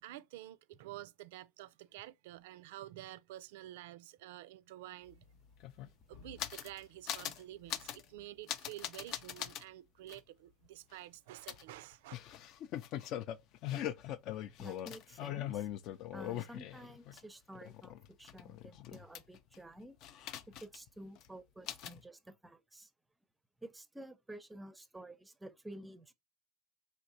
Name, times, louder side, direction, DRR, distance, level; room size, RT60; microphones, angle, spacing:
voice 1, 0.0-5.2 6.1-12.1, right 14 dB, 85° right, 0.3 m, -50 dB
sound 1, 5.1-5.2 5.4-6.8 7.1-7.4 7.7-8.0 8.5-9.6 10.1-10.2 11.5-17.2 17.5-19.6 20.0-20.9 21.2-21.3 21.7-22.0, left 11 dB, 55° left, 0.4 m, -41 dB
voice 2, 14.6-15.7 16.1-20.0 20.5-22.9 23.6-26.1, right 1 dB, 10° right, 0.5 m, -51 dB
4.5 x 3.3 x 2.6 m
supercardioid pair, 125°, 0 cm